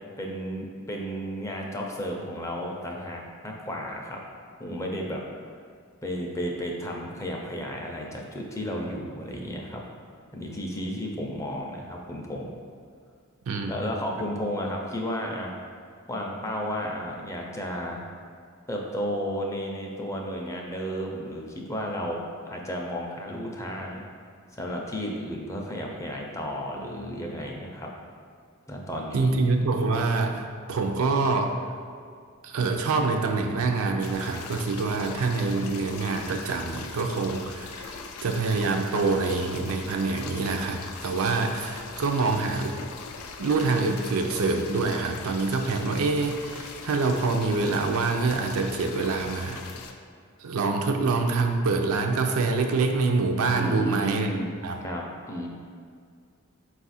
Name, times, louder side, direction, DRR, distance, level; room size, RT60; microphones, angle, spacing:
voice 1, 0.0-4.2 4.6-5.2 6.0-9.8 10.3-12.5 13.7-15.5 16.1-18.0 18.7-24.0 24.5-27.9 28.7-29.3 53.5-54.5 54.8-55.5, equal, 15° left, 0 dB, 0.4 m, -33 dB
voice 2, 13.5-13.8 29.1-31.5 32.4-42.7 43.4-49.6 50.4-54.3 54.6-54.8, right 3 dB, 80° right, 4 dB, 0.4 m, -26 dB
sound 1, 34.0-49.9, left 5 dB, 85° left, 0.4 m, -41 dB
4.8 x 2.4 x 4.0 m, 2.1 s
head